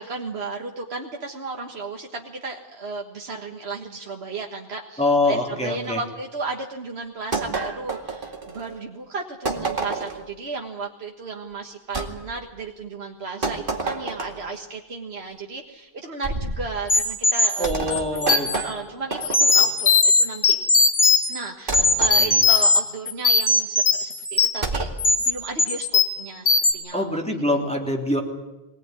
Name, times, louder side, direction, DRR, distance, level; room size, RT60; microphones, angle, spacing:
voice 1, 0.0-20.6 21.3-24.9 25.2-25.9 26.2-27.2 27.6-27.7, right 4 dB, 80° right, 1 dB, 1.8 m, -34 dB
voice 2, 5.0-6.0 17.6-18.5 22.2-22.4 26.9-28.2, left 1 dB, 5° left, 0 dB, 3.2 m, -24 dB
sound 1, 7.3-8.7 9.5-10.3 11.9-12.1 13.4-14.5 16.2-16.7 17.6-19.7 21.7-22.2 24.6-25.0, right 3 dB, 55° right, 2.4 m, -29 dB
sound 2, 16.9-18.6 19.2-21.4 21.7-22.8 23.1-24.6 25.0-25.3 25.6-26.2 26.5-26.7, left 3 dB, 85° left, 2.7 m, -19 dB
23.5 x 18.0 x 9.6 m, 1.0 s
omnidirectional pair, 1.1 m